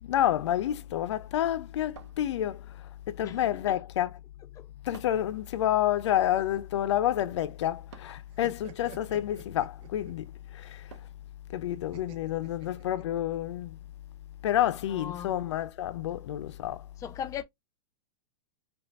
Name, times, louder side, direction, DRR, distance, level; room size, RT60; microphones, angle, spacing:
voice 1, 0.0-4.1 4.8-10.9 11.5-13.8 14.4-16.9, left 12 dB, 70° left, 0.5 m, -29 dB
sound 1, 2.0-2.8 4.9-5.4 7.9-8.3 10.9-11.3, right 7 dB, 75° right, 1.0 m, -52 dB
voice 2, 3.2-3.8 4.6-4.7 11.9-12.0 14.9-15.3 17.0-17.4, left 9 dB, 20° left, 0.5 m, -39 dB
sound 2, 6.0-7.8 8.1-10.3 11.9-13.4, right 6 dB, 40° right, 1.1 m, -50 dB
5.2 x 2.4 x 2.4 m
hypercardioid pair, 120°, 15 cm